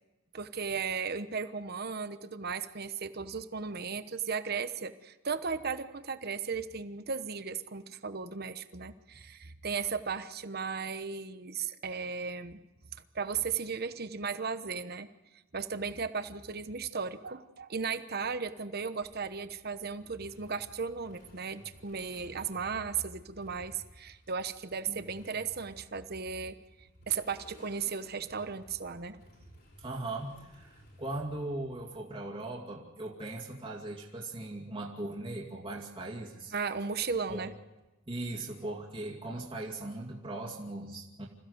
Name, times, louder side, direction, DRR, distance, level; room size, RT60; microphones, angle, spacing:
voice 1, 0.3-12.6 13.1-15.1 15.5-29.2 36.5-37.5, right 5 dB, 50° right, 11 dB, 1.0 m, -36 dB
Motorcycle, 19.0-31.9, equal, 55° left, 6.3 m, -57 dB
voice 2, 29.8-36.5 37.3-37.5 38.1-41.3, right 2 dB, 25° right, -3 dB, 2.4 m, -39 dB
26.5 x 15.5 x 8.0 m, 1.1 s
head